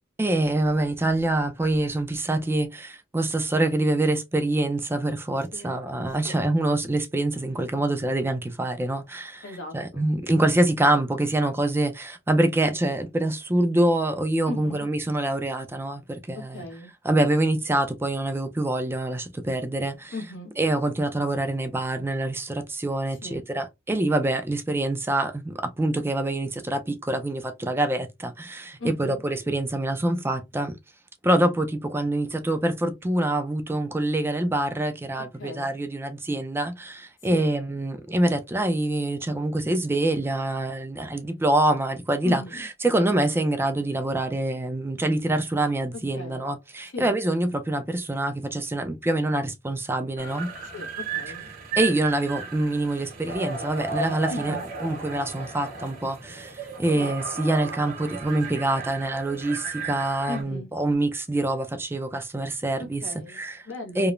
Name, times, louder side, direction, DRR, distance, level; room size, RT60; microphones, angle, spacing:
voice 1, 0.2-9.4 9.7-16.6 17.1-20.1 20.6-30.7 31.2-50.5 51.8-54.5 54.8-63.0 63.3-63.6 64.0-64.1, right 1 dB, 15° right, 0.4 m, -25 dB
voice 2, 9.4-10.1 14.4-14.8 16.5-16.9 20.1-20.5 23.2-23.4 28.8-29.2 35.2-35.8 37.3-37.5 42.2-42.7 46.1-46.5 46.9-47.1 50.6-51.5 54.3-54.7 56.9-57.1 60.3-60.7 62.8-64.1, left 2 dB, 80° left, 1.1 m, -37 dB
sound 1, 50.2-60.4, right 4 dB, 45° right, 0.9 m, -35 dB
3.0 x 2.0 x 2.4 m
head